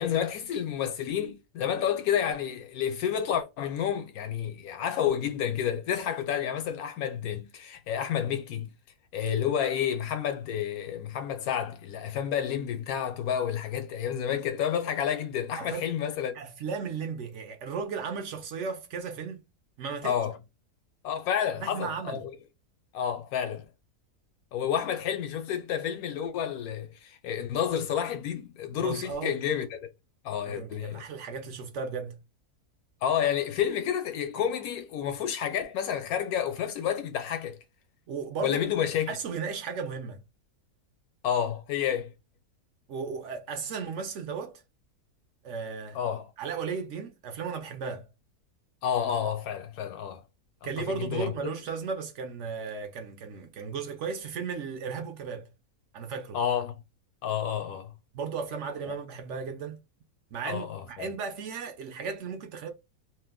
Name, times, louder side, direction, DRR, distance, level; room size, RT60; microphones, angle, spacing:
voice 1, 0.0-8.7 9.1-16.4 20.0-20.4 21.0-22.3 22.9-23.6 24.5-29.9 30.2-31.1 33.0-37.6 38.4-39.2 41.2-42.1 45.9-46.3 48.8-50.2 50.8-51.3 56.3-56.8 57.2-57.9 58.9-59.0 60.4-61.1, left 9 dB, 75° left, 1.0 m, -30 dB
voice 2, 15.6-15.9 16.3-19.5 19.8-20.2 21.6-22.2 28.8-29.3 30.5-32.2 38.1-38.8 39.1-40.2 42.9-44.6 45.4-46.0 46.4-48.1 50.6-55.5 55.9-56.4 58.1-59.8 60.3-62.7, right 5 dB, 65° right, 0.8 m, -35 dB
2.7 x 2.1 x 3.4 m
omnidirectional pair, 1.7 m